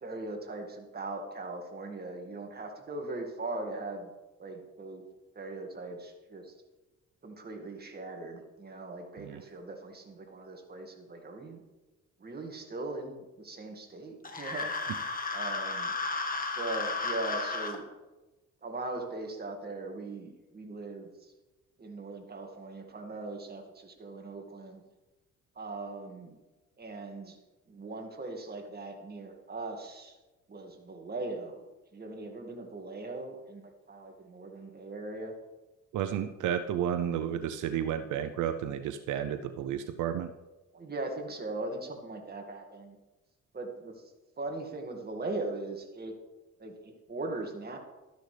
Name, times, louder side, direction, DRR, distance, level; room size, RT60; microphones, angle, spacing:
voice 1, 0.0-4.1 4.4-5.0 5.4-6.5 7.2-11.6 12.2-14.7 15.3-15.9 16.6-17.9 18.6-21.3 21.8-24.8 25.6-26.4 26.8-27.4 27.7-30.2 30.5-31.7 31.9-35.3 40.7-43.0 43.5-43.9 44.4-46.2 46.6-47.8, right 2 dB, 30° right, 3 dB, 2.0 m, -40 dB
sound 1, 14.2-17.8, left 3 dB, 30° left, 1.5 m, -33 dB
voice 2, 35.9-40.3, right 9 dB, 80° right, 9 dB, 0.6 m, -32 dB
13.0 x 10.5 x 3.4 m, 1.1 s
cardioid pair, 90°, 30 cm